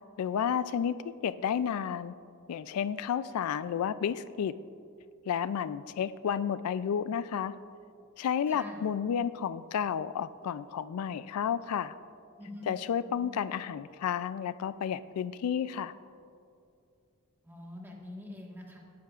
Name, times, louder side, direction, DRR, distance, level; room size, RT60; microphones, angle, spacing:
voice 1, 0.2-2.1 2.5-4.6 5.3-7.6 8.2-11.9 12.7-15.9, left 8 dB, 85° left, 15 dB, 0.3 m, -31 dB
voice 2, 8.5-8.8 12.4-12.7 13.0-13.3 17.4-18.8, left 1 dB, 10° right, -2 dB, 1.5 m, -45 dB
18.0 x 10.5 x 2.4 m, 2.5 s
head